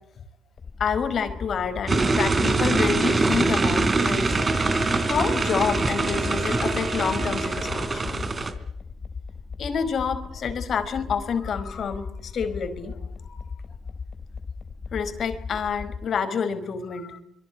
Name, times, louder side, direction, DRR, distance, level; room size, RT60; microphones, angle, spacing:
sound 1, 0.6-16.0, left 5 dB, 40° left, 3.3 m, -38 dB
voice 1, 0.8-4.4 5.0-8.2 9.6-13.0 13.2-13.5 14.9-17.2, left 6 dB, 55° left, 10 dB, 4.8 m, -28 dB
sound 2, 1.9-8.5, right 3 dB, 30° right, 3.5 m, -23 dB
Wind instrument woodwind instrument, 4.2-8.1, left 1 dB, 85° right, 7.2 m, -38 dB
25.5 x 23.0 x 8.2 m, 0.77 s
cardioid pair, 90°, 0 cm